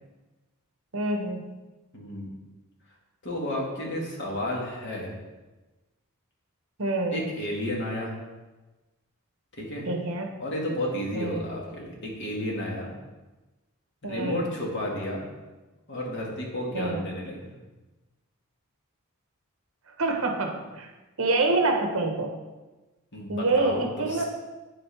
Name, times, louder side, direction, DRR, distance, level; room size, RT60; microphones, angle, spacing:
voice 1, 0.9-1.6 6.8-7.2 9.9-10.4 11.1-11.5 14.0-14.4 16.7-17.0 20.0-20.9 21.2-22.3 23.3-24.2, right 2 dB, 65° right, 3 dB, 1.1 m, -26 dB
voice 2, 1.9-2.3 3.2-5.1 7.1-8.2 9.5-9.9 10.4-12.9 14.0-15.2 15.9-17.6 23.1-24.3, left 1 dB, 55° left, -2 dB, 2.0 m, -32 dB
8.7 x 7.6 x 3.5 m, 1.2 s
head